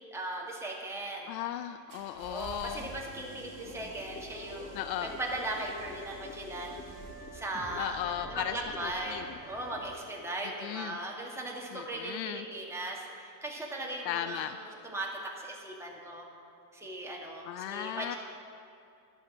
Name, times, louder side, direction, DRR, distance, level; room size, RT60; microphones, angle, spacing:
voice 1, 0.1-1.3 2.2-6.7 7.3-15.1 15.4-16.2 16.7-18.2, right 1 dB, 5° right, -3 dB, 2.3 m, -38 dB
voice 2, 1.3-2.9 4.7-5.1 7.8-8.5 8.8-9.2 10.6-11.0 11.7-12.5 14.0-14.6 17.4-18.1, left 11 dB, 85° left, 10 dB, 0.6 m, -36 dB
sound 1, 1.9-7.9, right 4 dB, 40° right, 2.2 m, -50 dB
sound 2, 3.6-9.9, left 2 dB, 20° left, 1.1 m, -47 dB
11.5 x 6.5 x 9.1 m, 2.5 s
supercardioid pair, 115°, 49 cm